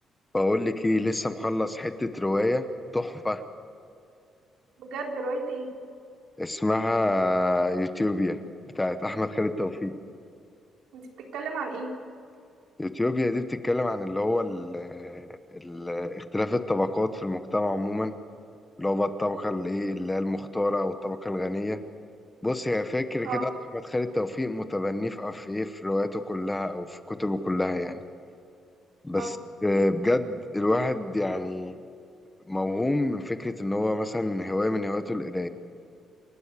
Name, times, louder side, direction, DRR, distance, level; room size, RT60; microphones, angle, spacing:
voice 1, 0.3-2.7 2.9-3.4 6.4-8.4 8.8-9.9 12.8-18.1 18.8-21.8 22.4-23.5 23.9-28.0 29.0-29.4 29.6-31.8 32.5-35.5, left 1 dB, 10° left, 10 dB, 0.9 m, -27 dB
voice 2, 4.8-5.7 10.9-11.9 23.2-23.5 29.1-29.3, right 3 dB, 85° right, 1 dB, 3.8 m, -33 dB
28.5 x 12.5 x 8.3 m, 2.5 s
cardioid pair, 160°, 0 cm